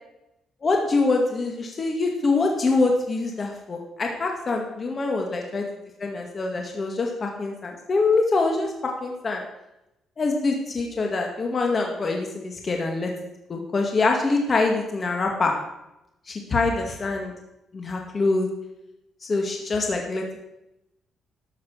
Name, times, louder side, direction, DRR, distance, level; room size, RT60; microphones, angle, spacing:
voice 1, 0.6-5.7 6.0-9.4 10.2-15.5 16.3-17.3 17.7-18.5 19.2-20.4, left 3 dB, 35° left, 1 dB, 2.0 m, -24 dB
13.0 x 7.3 x 7.4 m, 0.90 s
cardioid pair, 110°, 0 cm